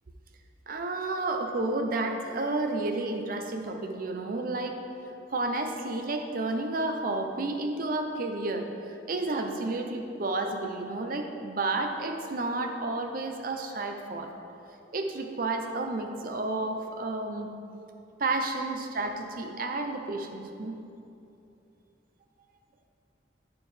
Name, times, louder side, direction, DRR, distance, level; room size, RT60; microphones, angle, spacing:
voice 1, 0.7-4.8 5.3-14.3 14.9-17.5 18.2-20.7, right 2 dB, 50° right, 4 dB, 0.6 m, -31 dB
8.5 x 7.0 x 3.3 m, 2.7 s
head